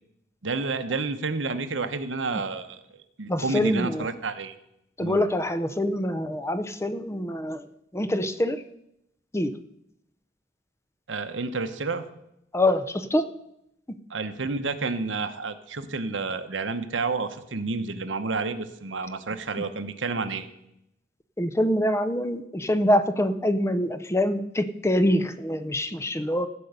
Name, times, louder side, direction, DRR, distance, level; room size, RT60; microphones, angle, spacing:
voice 1, 0.4-4.5 5.0-5.2 11.1-12.0 14.1-20.5, right 3 dB, 85° right, 9 dB, 1.0 m, -30 dB
voice 2, 3.3-4.1 5.0-7.6 7.9-8.6 9.3-9.5 12.5-13.3 21.4-26.5, left 1 dB, 15° left, 11 dB, 0.6 m, -25 dB
15.5 x 5.4 x 8.1 m, 0.81 s
head